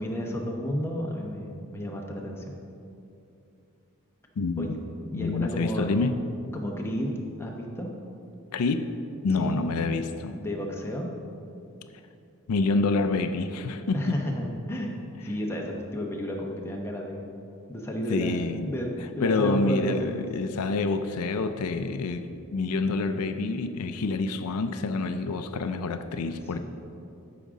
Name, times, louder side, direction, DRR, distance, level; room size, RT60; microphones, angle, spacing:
voice 1, 0.0-2.4 4.6-4.7 5.1-5.9 6.5-7.9 9.4-9.6 10.3-11.1 13.9-17.3 17.7-20.2 26.5-26.6, equal, 10° left, -1 dB, 0.9 m, -32 dB
voice 2, 4.4-4.8 5.1-6.2 8.5-8.9 9.2-10.4 12.5-14.0 18.1-18.7 19.2-22.2 22.5-26.6, left 3 dB, 85° left, 9 dB, 0.4 m, -27 dB
13.0 x 5.1 x 3.7 m, 2.6 s
head